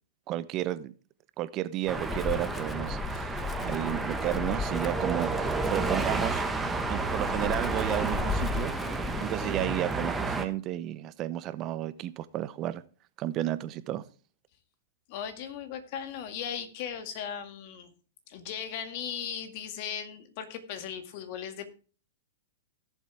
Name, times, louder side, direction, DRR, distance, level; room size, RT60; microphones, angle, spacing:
voice 1, 0.3-0.9 1.4-6.4 6.9-8.7 9.2-12.8 13.2-14.0, right 13 dB, 35° right, 0.8 m, -32 dB
Wind, 1.9-9.6, left 6 dB, 20° left, 0.7 m, -37 dB
sound 1, 1.9-10.5, right 3 dB, 10° right, 1.5 m, -31 dB
voice 2, 15.1-17.9 18.3-21.7, left 8 dB, 50° left, 2.2 m, -37 dB
16.5 x 7.4 x 3.5 m
hypercardioid pair, 115°, 0 cm